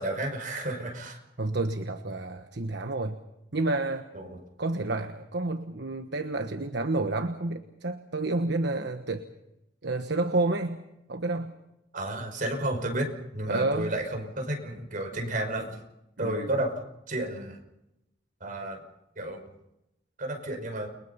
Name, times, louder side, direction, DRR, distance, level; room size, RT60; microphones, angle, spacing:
voice 1, 0.0-1.2 4.1-4.4 11.9-15.8 16.2-16.7 17.1-17.6 18.4-18.8 19.2-19.4 20.2-20.9, right 1 dB, 45° right, 3 dB, 5.5 m, -32 dB
voice 2, 1.4-3.2 3.5-4.1 4.6-9.3 9.8-11.6 13.5-14.0 16.2-16.5, right 2 dB, 65° right, 7 dB, 1.3 m, -30 dB
29.5 x 23.0 x 5.7 m, 0.87 s
head